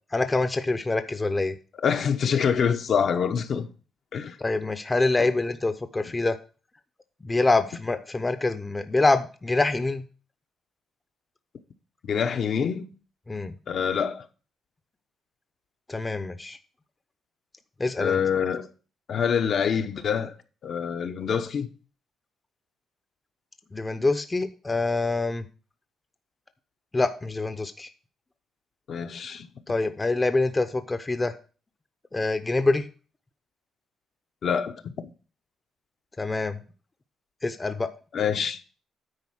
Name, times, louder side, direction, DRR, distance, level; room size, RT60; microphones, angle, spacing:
voice 1, 0.1-1.5 4.4-6.4 7.2-10.0 13.3-13.5 15.9-16.6 17.8-18.2 23.7-25.5 26.9-27.9 29.7-31.3 32.1-32.9 36.2-36.6 37.4-37.9, left 2 dB, 20° left, 0.7 m, -25 dB
voice 2, 1.8-3.7 4.1-4.4 12.0-12.8 13.7-14.3 18.0-18.7 19.1-20.3 20.6-21.7 28.9-29.5 34.4-34.9 38.1-38.6, left 7 dB, 60° left, 0.9 m, -25 dB
9.8 x 4.2 x 5.8 m
cardioid pair, 90°, 0 cm